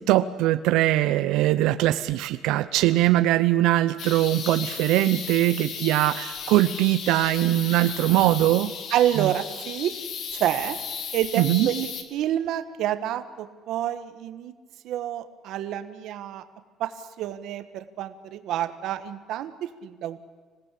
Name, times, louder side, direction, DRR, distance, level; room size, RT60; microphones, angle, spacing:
voice 1, 0.0-8.7 9.2-9.3 11.4-11.7, right 15 dB, 80° right, 12 dB, 0.8 m, -21 dB
sound 1, 4.0-12.0, left 6 dB, 45° left, 2.4 m, -35 dB
voice 2, 8.9-9.9 10.3-10.8 11.1-14.5 14.8-16.4 16.8-16.9 17.2-20.2, right 11 dB, 60° right, 10 dB, 1.5 m, -28 dB
26.0 x 18.0 x 8.5 m, 1.5 s
cardioid pair, 180°, 0 cm